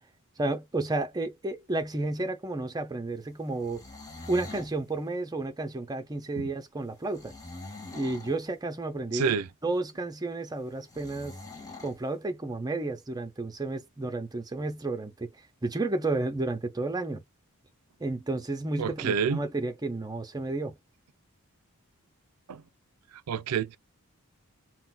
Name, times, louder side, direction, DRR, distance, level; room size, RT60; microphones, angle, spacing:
voice 1, 0.4-3.8 4.3-7.3 7.9-9.4 9.6-11.4 11.8-15.3 15.6-17.2 18.0-20.8, right 2 dB, 15° right, 0.6 m, -31 dB
sound 1, 3.5-4.7 7.1-8.4 10.9-12.0, left 2 dB, 15° left, 1.0 m, -44 dB
voice 2, 9.1-9.5 18.8-19.4 22.5-22.6 23.3-23.8, right 6 dB, 80° right, 0.4 m, -28 dB
3.8 x 2.1 x 2.4 m
head